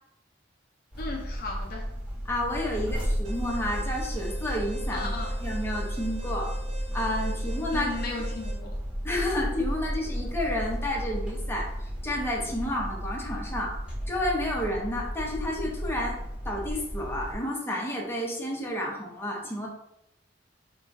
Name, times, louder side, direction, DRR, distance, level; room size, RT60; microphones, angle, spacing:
sound 1, 0.9-17.3, equal, 5° right, 1.2 m, -33 dB
voice 1, 1.0-1.8 4.9-5.3 7.7-8.7, left 3 dB, 50° left, 1 dB, 0.5 m, -35 dB
voice 2, 2.2-5.1 5.4-6.5 6.9-8.0 9.0-13.8 14.1-16.2 16.4-19.7, left 1 dB, 15° left, -2 dB, 0.7 m, -31 dB
Alarm, 3.2-8.5, right 3 dB, 90° right, 1.1 m, -46 dB
3.0 x 2.3 x 3.6 m, 0.80 s
head